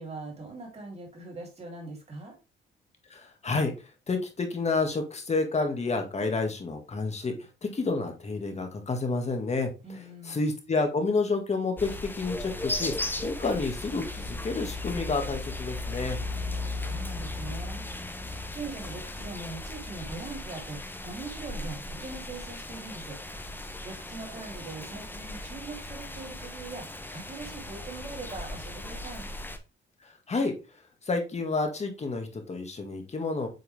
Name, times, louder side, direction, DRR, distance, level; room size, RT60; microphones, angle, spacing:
voice 1, 0.0-2.4 9.8-10.4 16.7-17.8 18.5-23.2 23.8-26.9 27.1-29.3, right 3 dB, 30° right, 0 dB, 3.6 m, -41 dB
voice 2, 3.1-3.7 4.1-7.3 7.6-9.7 10.2-12.9 13.2-16.2 30.3-30.5 31.1-33.5, left 3 dB, 35° left, 4 dB, 1.8 m, -29 dB
sound 1, 11.8-29.6, left 2 dB, 10° left, 1.0 m, -37 dB
8.0 x 3.7 x 3.5 m, 0.29 s
cardioid pair, 90°, 20 cm